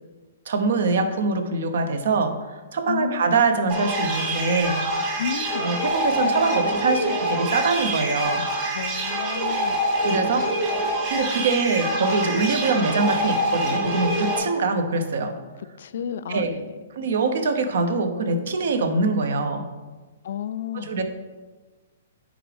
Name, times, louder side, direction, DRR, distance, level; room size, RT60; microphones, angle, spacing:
voice 1, 0.5-2.4 2.7-4.8 5.6-8.4 10.0-10.5 11.1-15.4 16.3-16.6 16.9-19.7 20.7-21.0, right 3 dB, 70° right, 8 dB, 0.8 m, -23 dB
voice 2, 2.9-3.4 5.2-5.7 8.7-9.8 15.8-16.7 20.2-20.9, left 8 dB, 65° left, 14 dB, 0.3 m, -32 dB
sound 1, 3.7-14.4, right 1 dB, 35° right, 2.1 m, -25 dB
9.4 x 3.8 x 3.4 m, 1.3 s
hypercardioid pair, 140°, 0 cm